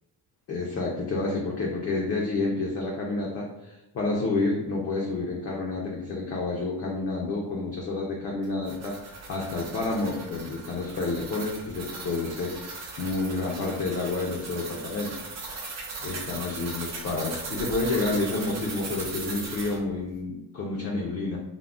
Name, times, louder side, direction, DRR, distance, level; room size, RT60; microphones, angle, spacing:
voice 1, 0.5-15.1 16.0-21.4, left 3 dB, 40° left, -3 dB, 0.4 m, -29 dB
sound 1, 8.4-19.8, right 3 dB, 40° right, 0.6 m, -38 dB
3.5 x 2.0 x 2.3 m, 0.94 s
cardioid pair, 160°, 41 cm